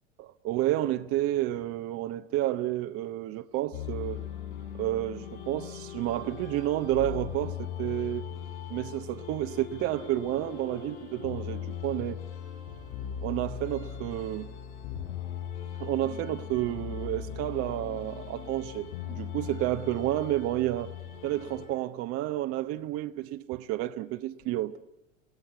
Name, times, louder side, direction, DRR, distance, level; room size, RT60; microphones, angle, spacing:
voice 1, 0.2-4.2 4.8-8.3 8.7-12.2 13.2-14.5 15.8-20.9 21.2-24.8, right 14 dB, 35° right, 0.9 m, -30 dB
sound 1, 3.7-21.7, left 9 dB, 60° left, 7.4 m, -39 dB
28.0 x 19.0 x 9.4 m
figure-of-eight pair, 85°, 38 cm